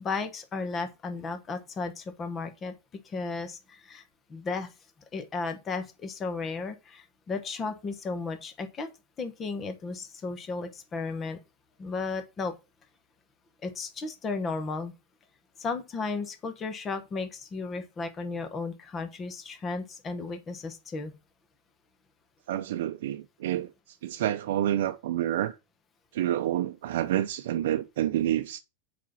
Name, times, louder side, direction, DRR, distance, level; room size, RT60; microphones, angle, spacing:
voice 1, 0.0-2.7 3.0-4.0 4.3-4.7 5.1-8.9 9.2-11.4 11.8-12.5 13.6-14.9 15.6-21.1, left 4 dB, 20° left, 1.1 m, -34 dB
voice 2, 22.5-25.6 26.1-28.6, right 12 dB, 75° right, 0.6 m, -28 dB
7.5 x 5.1 x 5.5 m
supercardioid pair, 165°, 0 cm